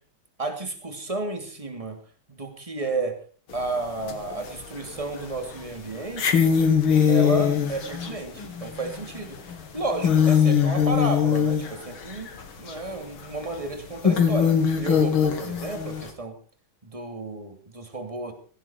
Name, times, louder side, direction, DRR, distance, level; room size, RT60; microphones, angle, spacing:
voice 1, 0.4-2.0 2.3-3.2 3.5-6.4 7.1-9.4 9.7-12.3 12.6-16.3 16.8-18.3, right 3 dB, 15° right, 5 dB, 2.8 m, -32 dB
sound 1, 3.5-3.6 4.1-4.8 5.2-5.3 6.1-12.4 12.7-12.8 13.4-13.5 14.0-16.1, left 7 dB, 75° left, 2.8 m, -21 dB
17.5 x 17.0 x 4.5 m, 0.42 s
omnidirectional pair, 2.3 m